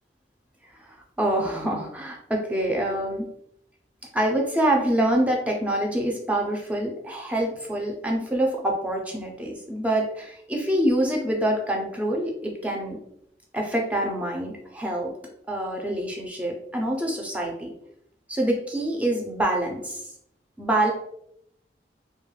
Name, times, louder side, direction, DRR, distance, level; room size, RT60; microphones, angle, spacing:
voice 1, 0.8-3.3 4.1-13.0 13.5-15.1 15.5-17.7 18.3-20.1 20.6-20.9, right 1 dB, 10° right, 0 dB, 0.4 m, -26 dB
2.3 x 2.1 x 3.0 m, 0.73 s
head